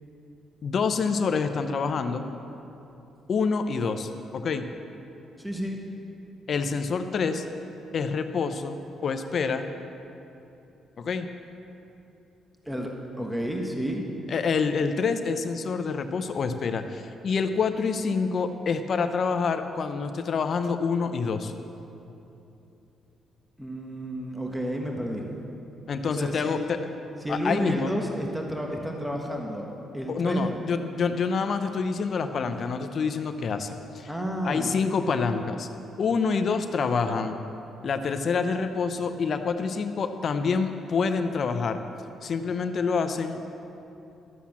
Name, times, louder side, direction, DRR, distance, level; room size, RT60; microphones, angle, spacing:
voice 1, 0.6-2.3 3.3-4.6 6.5-7.4 7.9-8.8 9.0-9.6 11.0-11.3 14.3-21.5 25.9-26.8 27.3-27.9 30.1-34.1 34.4-35.7 36.0-37.4 37.8-41.8 42.2-43.4, left 5 dB, 50° left, 8 dB, 0.7 m, -27 dB
voice 2, 5.4-5.8 12.6-12.9 13.2-14.0 23.6-25.3 26.1-26.6 27.2-29.7 29.9-30.5 34.1-34.7, equal, 5° right, 0 dB, 1.4 m, -31 dB
12.5 x 7.3 x 7.3 m, 2.9 s
cardioid pair, 90°, 0 cm